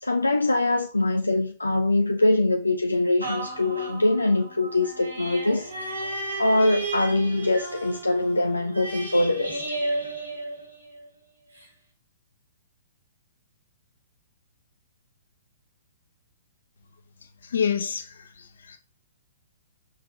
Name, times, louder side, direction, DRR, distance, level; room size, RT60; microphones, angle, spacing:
voice 1, 0.0-5.7 6.4-9.6, left 2 dB, 80° left, 0.6 m, -23 dB
sound 1, 3.2-11.1 11.6-11.7, right 2 dB, 85° right, 2.5 m, -33 dB
voice 2, 17.4-18.8, left 7 dB, 60° left, 1.3 m, -28 dB
5.9 x 5.1 x 4.0 m
figure-of-eight pair, 115°, 0 cm